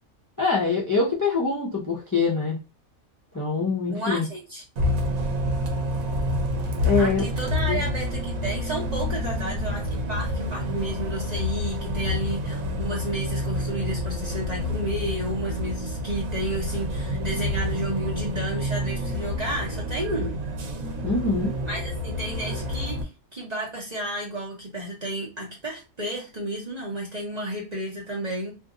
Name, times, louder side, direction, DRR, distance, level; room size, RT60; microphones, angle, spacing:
voice 1, 0.4-2.6 3.3-4.3 6.8-7.2 7.7-7.8 21.0-21.5, left 4 dB, 15° left, -2 dB, 0.7 m, -24 dB
voice 2, 3.9-4.6 7.0-20.4 21.6-28.5, right 1 dB, 35° right, -3 dB, 0.9 m, -32 dB
Bus, 4.8-23.0, left 1 dB, 80° right, 1.2 m, -28 dB
2.7 x 2.5 x 3.7 m, 0.29 s
omnidirectional pair, 1.4 m